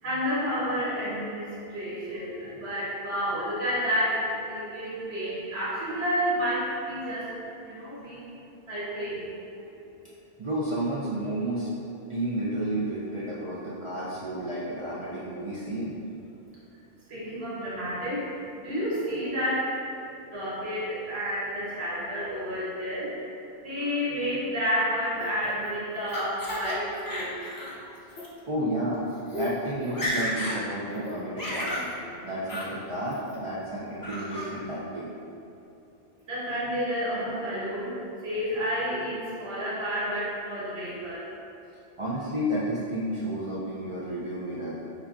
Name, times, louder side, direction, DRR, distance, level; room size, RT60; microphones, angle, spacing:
voice 1, 0.0-8.2 8.7-9.3 17.1-19.8 20.3-23.3 23.6-27.9 36.3-41.1, equal, 80° right, -9 dB, 1.4 m, -30 dB
voice 2, 10.4-11.7 12.1-15.9 28.5-29.0 29.3-31.9 32.2-35.1 42.0-44.8, right 1 dB, 60° right, -8 dB, 0.3 m, -31 dB
Laughter, 25.2-26.8 27.1-27.7 28.1-28.3 28.9-29.0 29.3-29.5 29.8-30.6 30.9-31.9 32.5-32.7 33.1-33.6 34.0-34.5, left 1 dB, 35° left, 0.3 m, -33 dB
5.5 x 2.3 x 2.3 m, 2.8 s
omnidirectional pair, 1.1 m